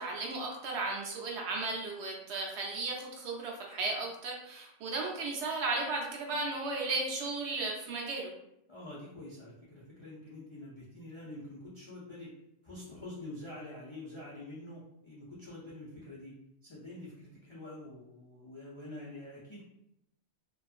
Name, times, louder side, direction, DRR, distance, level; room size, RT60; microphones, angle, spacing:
voice 1, 0.0-8.3, right 3 dB, 70° right, -1 dB, 0.8 m, -35 dB
voice 2, 8.7-12.3 12.6-16.3 16.6-19.6, left 1 dB, 50° left, -7 dB, 0.3 m, -46 dB
2.5 x 2.4 x 2.4 m, 0.80 s
omnidirectional pair, 1.3 m